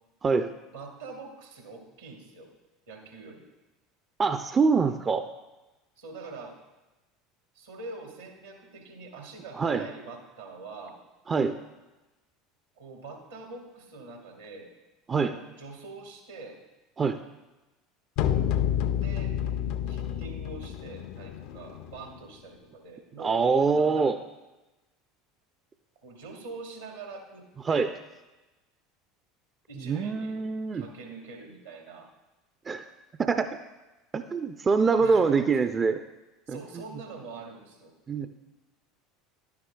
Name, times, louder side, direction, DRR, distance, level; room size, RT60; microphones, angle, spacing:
voice 1, 0.7-2.5 2.9-3.5 6.0-6.6 7.5-11.0 12.8-14.7 15.1-16.6 19.0-19.4 19.9-23.4 23.7-24.2 26.0-27.9 29.7-30.3 30.7-32.1 35.0-35.5 36.5-37.9, right 3 dB, 75° right, 2 dB, 1.5 m, -44 dB
voice 2, 4.2-5.3 9.6-9.8 11.3-11.6 15.1-15.3 17.0-17.2 23.2-24.2 27.7-27.9 29.9-30.8 32.7-32.9 33.2-33.5 34.1-36.0 36.5-36.6 38.1-38.4, right 5 dB, 25° right, 9 dB, 0.4 m, -24 dB
sound 1, 18.2-22.2, left 9 dB, 55° left, 0.4 m, -29 dB
11.0 x 9.3 x 2.2 m, 1.1 s
figure-of-eight pair, 70°, 0 cm